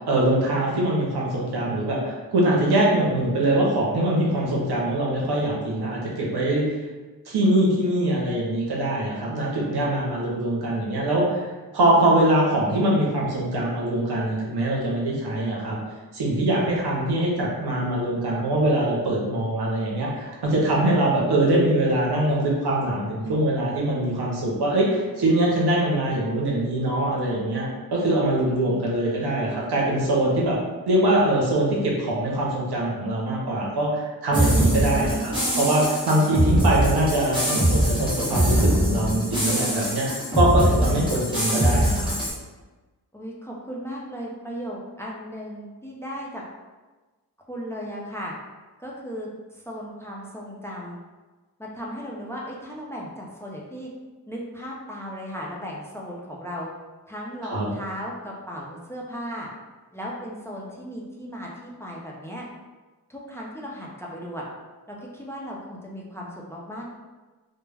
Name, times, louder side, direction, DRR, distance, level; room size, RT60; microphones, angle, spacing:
voice 1, 0.1-6.6 7.3-11.4 11.7-15.8 16.1-30.6 30.9-42.1 57.5-57.7, right 1 dB, 85° right, -3 dB, 0.8 m, -23 dB
sound 1, 34.3-42.3, equal, 15° right, 1.0 m, -22 dB
voice 2, 34.8-35.2 43.1-46.4 47.5-48.3 48.8-51.0 51.6-53.9 54.3-56.7 57.1-59.5 59.9-62.5 63.1-64.4 64.9-66.9, equal, 5° left, -3 dB, 0.4 m, -36 dB
2.2 x 2.1 x 3.2 m, 1.2 s
wide cardioid pair, 75°, 38 cm